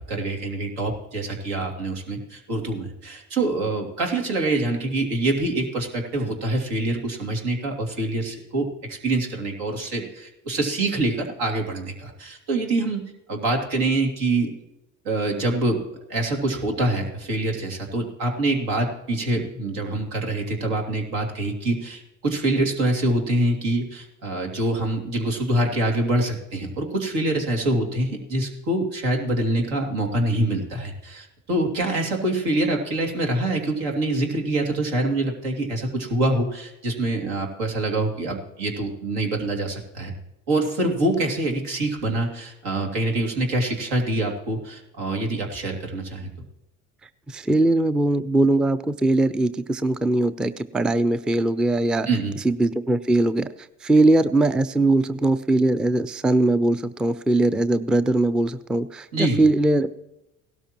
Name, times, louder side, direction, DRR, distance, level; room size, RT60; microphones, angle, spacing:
voice 1, 0.0-13.0 13.3-14.6 15.0-40.1 40.5-46.3 52.1-52.4 59.1-59.4, right 2 dB, 75° right, 2 dB, 2.8 m, -25 dB
voice 2, 47.3-52.1 52.4-53.5 53.8-59.9, right 2 dB, ahead, 14 dB, 0.4 m, -21 dB
17.0 x 13.0 x 3.0 m, 0.91 s
hypercardioid pair, 75°, 37 cm